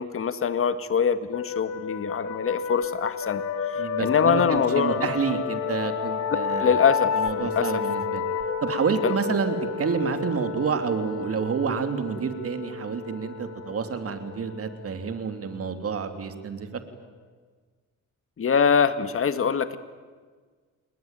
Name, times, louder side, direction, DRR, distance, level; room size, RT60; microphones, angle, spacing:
voice 1, 0.0-3.4 4.0-5.1 6.6-7.8 9.0-9.1 18.4-19.8, left 6 dB, 45° left, 12 dB, 1.9 m, -24 dB
sound 1, 1.3-16.7, left 6 dB, 60° left, 2.9 m, -31 dB
voice 2, 3.8-6.8 7.1-8.2 8.6-16.8, right 6 dB, 50° right, 8 dB, 3.1 m, -29 dB
29.5 x 20.5 x 9.1 m, 1.5 s
cardioid pair, 90°, 30 cm